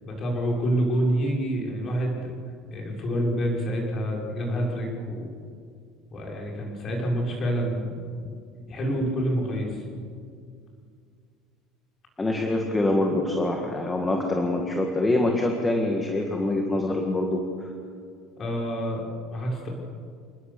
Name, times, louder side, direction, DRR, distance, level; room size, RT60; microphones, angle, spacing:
voice 1, 0.0-2.4 2.7-5.3 6.1-7.9 8.2-8.3 8.7-9.8 18.4-19.7, equal, 30° left, -1 dB, 5.1 m, -27 dB
voice 2, 12.2-17.7, left 2 dB, 10° left, 2 dB, 1.7 m, -25 dB
28.0 x 19.5 x 6.8 m, 2.2 s
cardioid pair, 170°, 0 cm